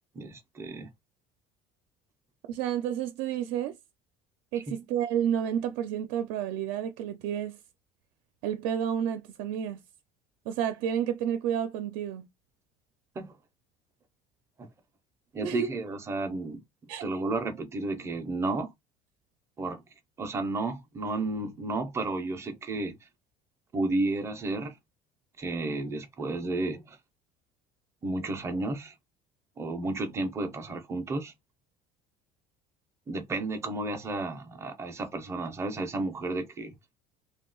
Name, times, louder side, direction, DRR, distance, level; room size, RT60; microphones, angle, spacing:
voice 1, 0.1-0.9 13.2-13.3 14.6-14.7 15.3-16.6 17.0-18.7 19.6-19.8 20.2-23.0 23.7-24.8 25.4-27.0 28.0-28.9 29.6-31.3 33.1-36.8, right 2 dB, 15° right, 0.4 m, -32 dB
voice 2, 2.5-3.8 4.5-7.6 8.4-9.8 10.5-12.3 15.4-15.8 16.9-17.0, right 9 dB, 80° right, 0.5 m, -30 dB
2.7 x 2.2 x 3.7 m
cardioid pair, 180°, 17 cm